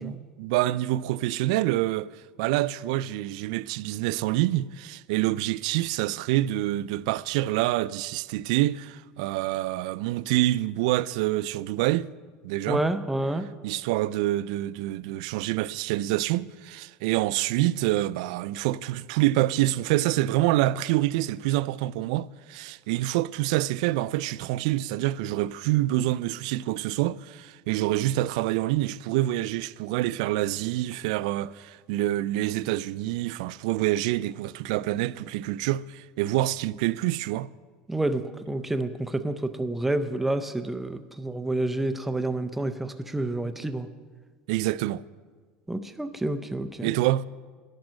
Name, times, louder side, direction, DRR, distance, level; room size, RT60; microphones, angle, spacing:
voice 1, 0.0-2.1 2.4-12.1 12.4-12.8 13.6-37.5 44.5-45.0 46.8-47.3, right 15 dB, 75° right, 0.3 m, -26 dB
voice 2, 12.7-13.5 37.9-43.9 45.7-46.9, right 2 dB, 5° right, 0.5 m, -29 dB
10.5 x 10.5 x 6.3 m
supercardioid pair, 140°, 4 cm